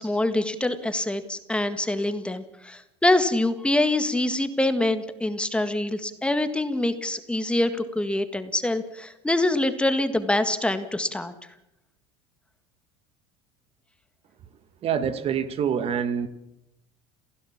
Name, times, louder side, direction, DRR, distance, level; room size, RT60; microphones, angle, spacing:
voice 1, 0.0-11.3, left 2 dB, 5° left, 9 dB, 1.8 m, -25 dB
voice 2, 14.8-16.3, right 8 dB, 45° right, 11 dB, 1.8 m, -26 dB
29.0 x 15.5 x 7.3 m, 0.86 s
supercardioid pair, 95°, 14 cm